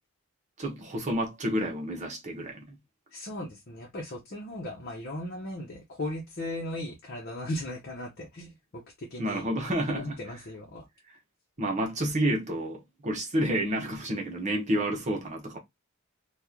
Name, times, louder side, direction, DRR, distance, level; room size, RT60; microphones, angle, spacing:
voice 1, 0.6-2.7 9.2-10.2 11.6-15.6, right 1 dB, 35° right, 1.0 m, -30 dB
voice 2, 3.1-9.5 9.9-10.8, left 1 dB, 50° left, 0.8 m, -37 dB
3.0 x 2.4 x 3.7 m
head